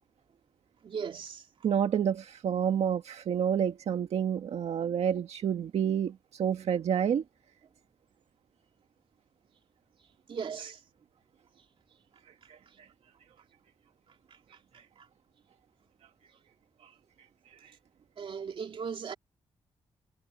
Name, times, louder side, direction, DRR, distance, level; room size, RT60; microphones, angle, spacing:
voice 1, 0.8-1.5 10.3-10.8 18.2-19.1, right 6 dB, 55° right, 3.0 m, -37 dB
voice 2, 1.6-7.2 12.5-12.9 14.7-14.8 16.8-16.9 17.5-17.7, right 8 dB, 85° right, 1.5 m, -29 dB
wide cardioid pair, 175°, 11 cm